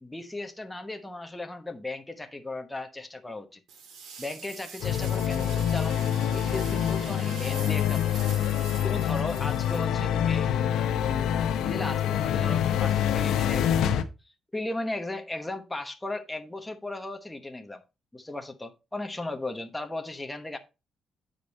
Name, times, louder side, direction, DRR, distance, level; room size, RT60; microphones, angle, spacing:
voice 1, 0.0-3.6 4.2-6.0 6.3-10.5 11.6-14.0 14.5-17.8 18.1-20.6, left 2 dB, 10° left, 1.0 m, -36 dB
sound 1, 3.7-10.4, right 6 dB, 75° right, 1.9 m, -44 dB
sound 2, 4.8-14.0, left 9 dB, 80° left, 0.8 m, -26 dB
8.8 x 5.1 x 4.1 m
cardioid pair, 125°, 0 cm